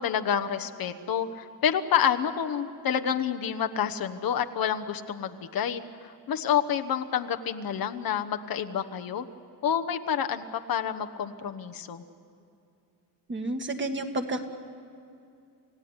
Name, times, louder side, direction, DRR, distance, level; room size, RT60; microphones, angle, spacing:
voice 1, 0.0-9.2 9.6-12.0, left 8 dB, 60° left, 6 dB, 1.2 m, -28 dB
voice 2, 13.3-14.4, right 2 dB, 30° right, 5 dB, 1.9 m, -30 dB
29.5 x 16.0 x 9.7 m, 2.6 s
cardioid pair, 125°, 39 cm